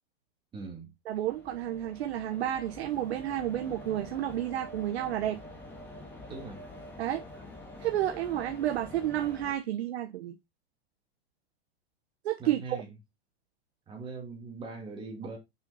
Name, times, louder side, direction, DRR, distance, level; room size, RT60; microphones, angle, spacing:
voice 1, 0.5-0.9 6.3-6.6 12.4-12.9 13.9-15.4, right 4 dB, 15° right, 2.2 m, -41 dB
sound 1, 1.1-9.5, left 1 dB, 5° left, 1.6 m, -47 dB
voice 2, 1.1-5.4 7.0-7.2 7.8-10.3 12.2-12.6, right 12 dB, 80° right, 1.0 m, -31 dB
6.1 x 5.3 x 4.0 m
supercardioid pair, 165°, 31 cm